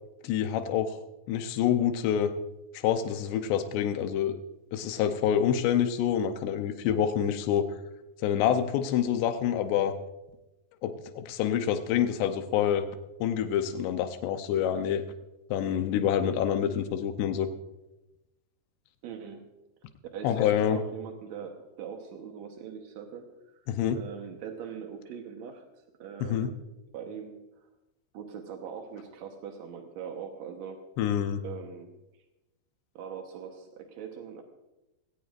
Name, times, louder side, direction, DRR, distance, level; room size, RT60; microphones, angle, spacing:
voice 1, 0.2-1.0 1.3-2.3 2.8-4.3 4.7-7.7 8.2-9.9 10.8-12.8 13.2-15.0 15.5-17.5 20.2-20.8 23.7-24.0 26.2-26.5 31.0-31.4, left 9 dB, 90° left, 8 dB, 2.9 m, -27 dB
voice 2, 19.0-19.5 20.1-23.3 23.9-25.6 26.0-26.5 26.9-27.7 28.1-30.8 31.4-31.9 32.9-34.4, right 7 dB, 80° right, 3 dB, 1.6 m, -41 dB
19.5 x 17.0 x 2.5 m, 0.99 s
omnidirectional pair, 4.7 m